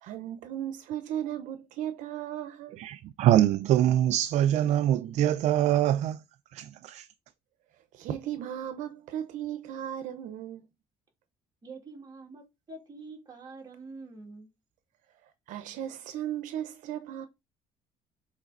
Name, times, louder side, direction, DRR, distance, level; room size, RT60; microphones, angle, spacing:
voice 1, 0.0-2.8 7.9-10.7 15.5-17.3, right 10 dB, 75° right, 0.8 m, -36 dB
voice 2, 2.8-6.2 6.5-7.1, right 12 dB, 60° right, 0.4 m, -24 dB
voice 3, 11.6-14.5, right 3 dB, 30° right, 2.8 m, -46 dB
7.3 x 4.0 x 3.9 m
cardioid pair, 155°, 13 cm